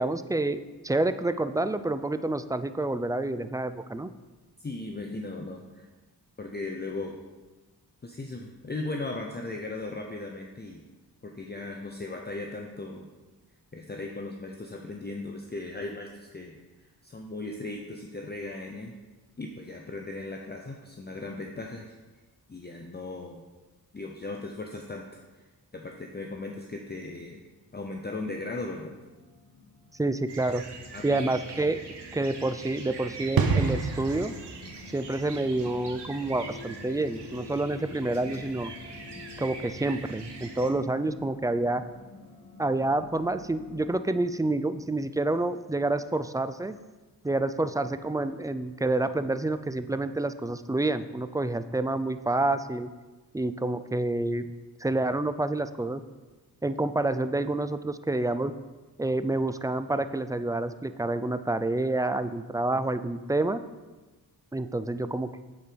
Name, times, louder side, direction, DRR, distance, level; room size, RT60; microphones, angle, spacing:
voice 1, 0.0-4.1 30.0-30.7 31.0-31.8 32.1-34.3 34.9-38.7 39.4-41.8 42.6-46.7 47.2-52.9 53.3-54.5 54.8-56.0 56.6-58.5 59.0-63.6 64.5-65.4, right 2 dB, 10° right, 12 dB, 0.3 m, -28 dB
voice 2, 4.6-5.9 6.4-7.2 8.0-10.8 11.2-13.1 13.7-18.9 19.4-21.9 22.5-23.4 23.9-25.1 25.7-27.4 27.7-28.9 30.9-31.3, left 2 dB, 25° left, 1 dB, 0.7 m, -37 dB
sound 1, 28.8-43.9, left 3 dB, 50° left, 1.8 m, -48 dB
sound 2, 30.3-40.7, right 4 dB, 90° right, 1.0 m, -44 dB
sound 3, 33.4-39.9 40.1-40.3, right 4 dB, 60° right, 0.7 m, -32 dB
8.3 x 4.6 x 5.1 m, 1.2 s
cardioid pair, 60°, 40 cm